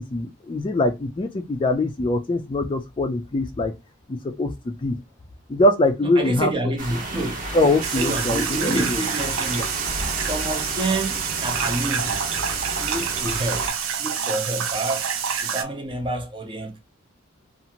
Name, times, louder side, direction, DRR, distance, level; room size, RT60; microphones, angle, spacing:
voice 1, 0.0-3.7 4.4-5.0 5.5-6.5 7.5-9.0, left 2 dB, 25° left, 0.3 m, -22 dB
voice 2, 6.0-7.4 8.0-9.6 10.1-12.2 12.8-13.7 14.0-16.8, right 2 dB, 25° right, 0.6 m, -28 dB
sound 1, 6.8-13.7, right 2 dB, 45° right, 1.0 m, -32 dB
sound 2, 7.8-15.6, right 7 dB, 90° right, 0.5 m, -27 dB
2.7 x 2.4 x 2.8 m
head